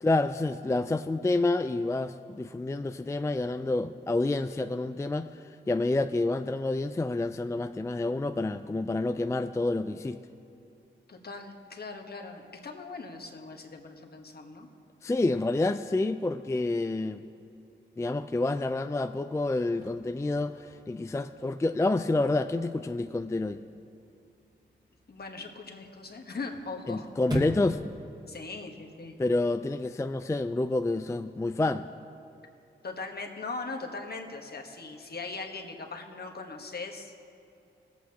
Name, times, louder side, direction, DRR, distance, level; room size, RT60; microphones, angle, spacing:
voice 1, 0.0-10.2 15.0-17.3 18.0-23.6 26.9-27.8 29.2-31.9, left 2 dB, 15° left, 9 dB, 0.3 m, -28 dB
voice 2, 11.1-14.7 25.1-27.1 28.3-29.1 32.8-37.3, left 3 dB, 50° left, 3 dB, 1.3 m, -40 dB
Chirp tweet / Car / Slam, 19.5-29.4, equal, 20° right, 1.9 m, -42 dB
18.5 x 8.2 x 2.8 m, 2.6 s
cardioid pair, 50°, 20 cm